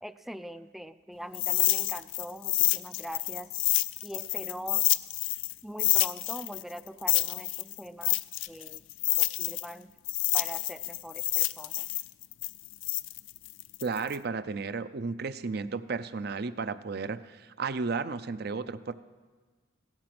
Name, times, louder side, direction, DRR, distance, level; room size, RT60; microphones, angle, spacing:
voice 1, 0.0-3.5 4.0-4.9 5.6-8.2 8.5-8.8 9.2-9.9 10.3-11.9, equal, ahead, 13 dB, 0.3 m, -42 dB
sound 1, 1.3-5.5 5.8-9.7 10.1-14.2, left 19 dB, 80° left, 0.4 m, -28 dB
voice 2, 13.8-18.9, right 4 dB, 55° right, 13 dB, 0.6 m, -33 dB
16.5 x 13.5 x 6.1 m, 1.4 s
head